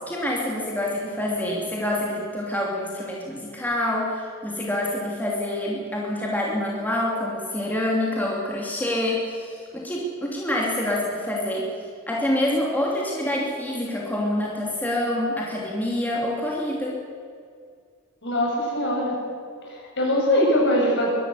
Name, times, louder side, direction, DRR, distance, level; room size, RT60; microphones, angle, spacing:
voice 1, 0.1-11.7 12.1-17.0, left 1 dB, 10° left, -3 dB, 2.8 m, -26 dB
voice 2, 18.2-19.2 19.7-21.1, left 1 dB, 55° left, -2 dB, 7.5 m, -22 dB
22.0 x 12.5 x 9.6 m, 2.2 s
head